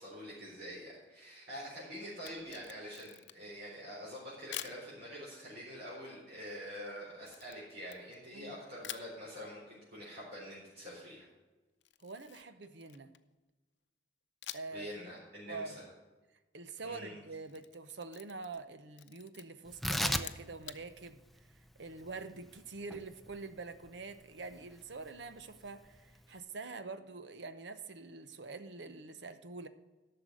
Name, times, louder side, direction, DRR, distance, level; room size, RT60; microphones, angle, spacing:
voice 1, 0.0-11.3 14.7-15.9 16.8-17.2, equal, 60° right, -7 dB, 4.1 m, -46 dB
Camera, 2.1-3.6 4.5-4.8 7.3-8.4 8.8-9.1 11.8-13.3 14.4-14.9 15.2-15.3 17.3-18.7 18.9-19.4 20.1-20.8, left 13 dB, 85° left, 0.6 m, -47 dB
voice 2, 12.0-13.1 14.5-14.9 15.5-15.8 16.5-21.2 21.8-29.7, right 3 dB, 80° right, 11 dB, 0.8 m, -45 dB
Tearing, 19.7-26.4, equal, ahead, 0.5 m, -40 dB
11.5 x 6.8 x 6.2 m, 1.2 s
head